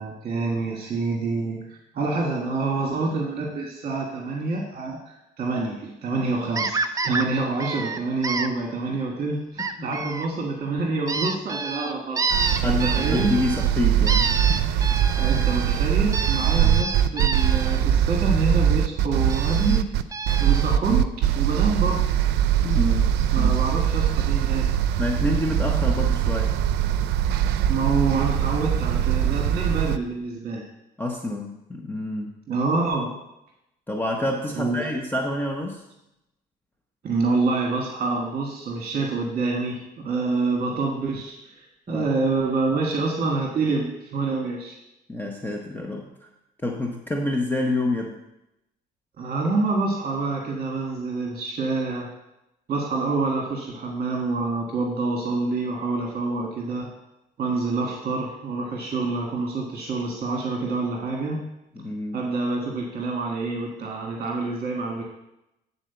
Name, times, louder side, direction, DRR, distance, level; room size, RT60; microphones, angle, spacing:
voice 1, 0.0-12.2 12.6-13.3 15.2-19.9 20.4-22.0 23.3-24.7 27.7-30.6 32.5-33.2 34.5-34.9 37.0-44.8 49.2-52.1 52.7-56.9 57.4-61.4 62.1-65.0, right 3 dB, 45° right, 0 dB, 1.6 m, -27 dB
sound 1, 6.5-7.2 7.6-8.5 9.6-10.3 11.1-13.7 14.1-17.8 19.3-19.8 20.1-20.8 22.7-22.8 23.2-23.3 23.6-23.7, right 4 dB, 20° right, 0.5 m, -28 dB
voice 2, 9.6-10.0 12.6-14.7 16.6-16.8 22.6-23.5 25.0-26.6 31.0-32.3 33.9-35.8 41.9-42.1 45.1-46.3 46.6-48.2 61.7-62.2, left 2 dB, 10° left, 1 dB, 0.8 m, -28 dB
sound 2, 12.3-30.0, right 10 dB, 85° right, 0.5 m, -22 dB
8.9 x 4.2 x 6.8 m, 0.88 s
cardioid pair, 110°, 17 cm